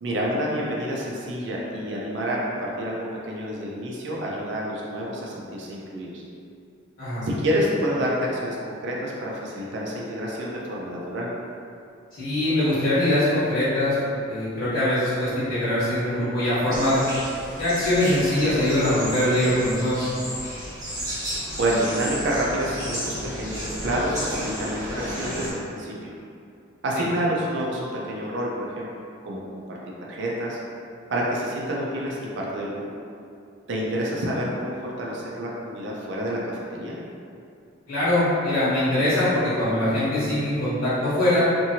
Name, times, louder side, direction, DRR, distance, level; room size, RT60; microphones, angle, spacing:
voice 1, 0.0-6.2 7.2-11.3 21.5-26.1 26.8-28.9 29.2-29.4 29.7-29.8 30.1-30.6 31.1-32.8 33.7-37.0, right 1 dB, 65° right, -4 dB, 0.5 m, -28 dB
voice 2, 12.1-17.0 17.6-20.1 26.9-27.0 37.9-41.5, left 1 dB, 70° left, -13 dB, 1.0 m, -22 dB
sound 1, 16.7-25.5, equal, 20° right, 0.8 m, -33 dB
2.8 x 2.6 x 2.7 m, 2.5 s
head